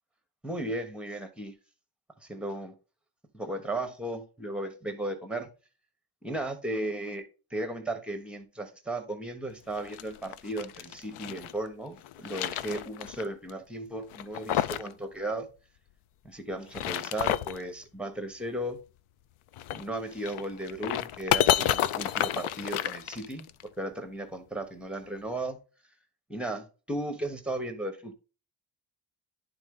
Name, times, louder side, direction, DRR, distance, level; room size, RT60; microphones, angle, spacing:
voice 1, 0.4-1.5 2.2-2.7 3.3-5.5 6.2-15.5 16.2-18.8 19.7-23.5 23.8-25.6 26.3-28.1, right 1 dB, ahead, 0.9 m, -35 dB
sound 1, 9.7-11.5 12.0-13.2 13.5-13.6 14.1-14.9 15.2-15.3 16.5-17.6 19.5-23.6, left 12 dB, 85° left, 0.6 m, -30 dB
10.5 x 3.8 x 3.6 m
wide cardioid pair, 145°, 49 cm